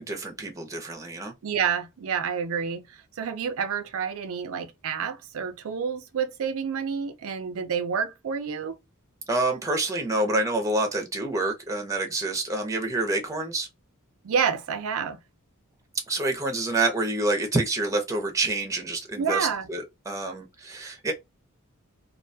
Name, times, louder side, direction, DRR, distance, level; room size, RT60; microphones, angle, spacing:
voice 1, 0.0-1.3 9.3-13.7 16.1-21.1, right 2 dB, 15° right, 0.6 m, -27 dB
voice 2, 1.4-2.8 3.2-8.8 14.2-15.2 19.2-19.7, right 7 dB, 65° right, 0.4 m, -28 dB
2.4 x 2.2 x 2.6 m
head